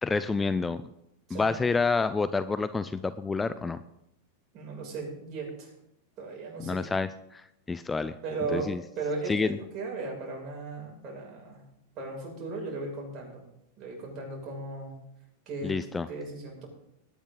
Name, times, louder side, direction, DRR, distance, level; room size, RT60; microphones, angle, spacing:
voice 1, 0.0-0.8 1.3-3.8 6.7-7.4 7.7-8.1 8.5-8.8 9.3-9.5 15.6-16.1, left 4 dB, 15° left, 13 dB, 0.6 m, -28 dB
voice 2, 1.3-1.6 4.5-5.7 6.2-6.9 8.2-11.7 12.0-13.5 13.8-14.9 15.5-15.7 16.1-16.7, right 3 dB, 45° right, -1 dB, 7.2 m, -36 dB
20.0 x 10.0 x 4.0 m, 0.79 s
hypercardioid pair, 100°, 0 cm